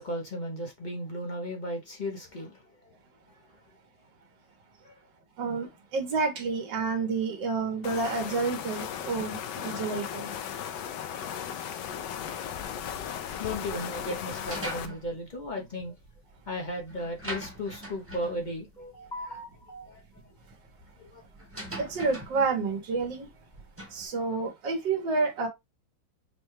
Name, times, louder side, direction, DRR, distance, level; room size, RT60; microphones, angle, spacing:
voice 1, 0.0-2.6 4.8-5.0 13.4-15.9 16.5-20.0 21.0-21.2, left 1 dB, 45° left, 0.6 m, -36 dB
voice 2, 5.4-10.3 11.9-12.0 21.8-23.3 23.9-25.5, right 4 dB, 80° right, 1.7 m, -29 dB
sound 1, 7.8-14.9, left 9 dB, 75° left, 1.2 m, -36 dB
sound 2, 14.3-24.1, right 1 dB, 10° right, 0.8 m, -44 dB
5.1 x 2.3 x 3.1 m
omnidirectional pair, 2.0 m